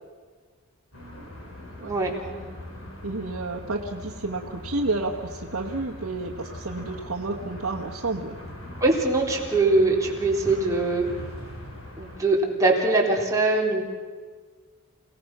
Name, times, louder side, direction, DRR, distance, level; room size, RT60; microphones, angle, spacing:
sound 1, 0.9-12.2, left 1 dB, 65° left, 5.6 m, -41 dB
voice 1, 1.9-2.3 8.8-11.1 12.0-13.8, right 2 dB, 15° right, -2 dB, 3.9 m, -22 dB
voice 2, 3.0-8.4, right 2 dB, 65° right, -1 dB, 1.5 m, -30 dB
29.0 x 18.0 x 6.1 m, 1.5 s
head